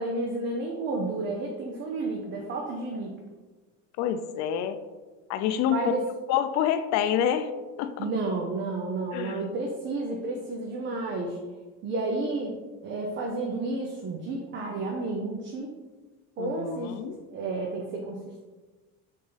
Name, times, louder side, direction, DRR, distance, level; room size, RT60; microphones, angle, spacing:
voice 1, 0.0-3.1 5.7-6.0 8.0-11.4 11.8-15.7 16.4-18.4, right 2 dB, 35° right, 0 dB, 0.8 m, -31 dB
voice 2, 4.0-4.8 5.3-5.8 6.3-7.5 7.8-8.1 9.1-9.4 16.4-17.2, left 9 dB, 55° left, 9 dB, 0.5 m, -27 dB
6.5 x 3.7 x 4.0 m, 1.3 s
cardioid pair, 145°, 32 cm